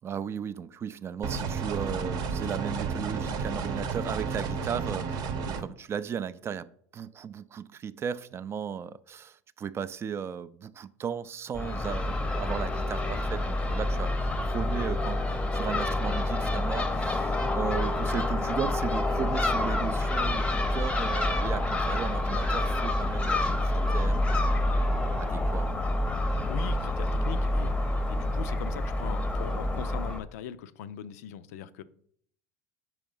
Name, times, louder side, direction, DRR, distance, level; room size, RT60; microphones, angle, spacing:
voice 1, 0.0-24.4 25.0-25.7, right 8 dB, 30° right, 0.3 m, -36 dB
sound 1, 1.2-5.6, right 5 dB, 50° right, 0.8 m, -32 dB
Crow / Gull seagull, 11.5-30.2, left 1 dB, 10° left, 0.7 m, -28 dB
voice 2, 26.5-27.7 28.1-31.8, left 10 dB, 75° left, 0.4 m, -40 dB
4.9 x 4.6 x 5.4 m
hypercardioid pair, 85°, 9 cm